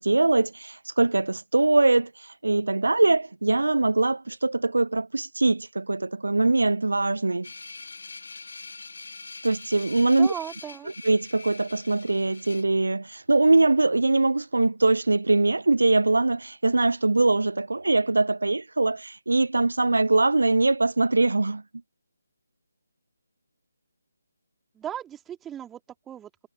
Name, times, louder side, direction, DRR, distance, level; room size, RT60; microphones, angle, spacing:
voice 1, 0.0-7.5 9.4-10.3 11.0-21.6, right 2 dB, 65° right, 0.4 m, -22 dB
sound 1, 7.4-12.6, left 3 dB, 55° left, 1.4 m, -43 dB
voice 2, 10.1-10.9 24.7-26.3, right 10 dB, 10° right, 2.5 m, -37 dB
figure-of-eight pair, 150°, 0 cm